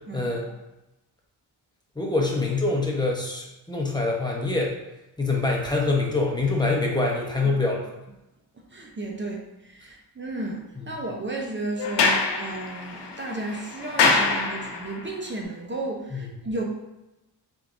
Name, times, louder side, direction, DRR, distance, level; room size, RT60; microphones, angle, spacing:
voice 1, 0.1-0.5 2.0-4.7 5.2-7.9 10.8-11.0 16.1-16.5, left 3 dB, 10° left, -1 dB, 1.0 m, -25 dB
voice 2, 8.7-16.6, right 2 dB, 30° right, -1 dB, 0.7 m, -33 dB
Sliding door, 11.8-15.1, left 4 dB, 85° left, 0.7 m, -25 dB
4.5 x 3.5 x 2.6 m, 0.97 s
cardioid pair, 80°, 41 cm